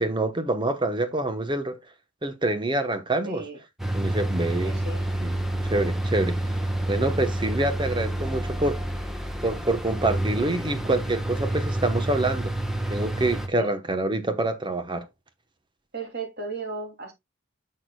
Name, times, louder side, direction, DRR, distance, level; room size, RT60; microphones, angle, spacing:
voice 1, 0.0-1.7 2.2-3.4 3.9-4.7 5.2-5.4 5.6-6.4 6.9-8.8 9.4-12.5 12.9-15.1, right 2 dB, 25° right, 1.0 m, -26 dB
voice 2, 3.2-3.6 4.6-5.1 13.6-13.7 15.9-17.1, right 3 dB, 55° right, 3.0 m, -35 dB
sound 1, 3.8-13.5, right 1 dB, ahead, 1.3 m, -28 dB
10.5 x 6.5 x 2.3 m
head